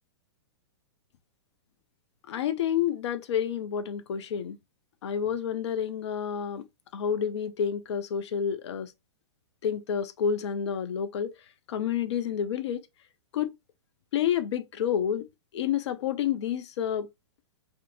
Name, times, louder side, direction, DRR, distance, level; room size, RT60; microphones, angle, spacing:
voice 1, 2.3-4.6 5.0-6.7 6.9-8.9 9.6-11.3 11.7-12.9 13.3-13.5 14.1-15.3 15.5-17.1, left 8 dB, 70° left, 0.4 m, -29 dB
2.5 x 2.5 x 2.5 m
hypercardioid pair, 120°, 15 cm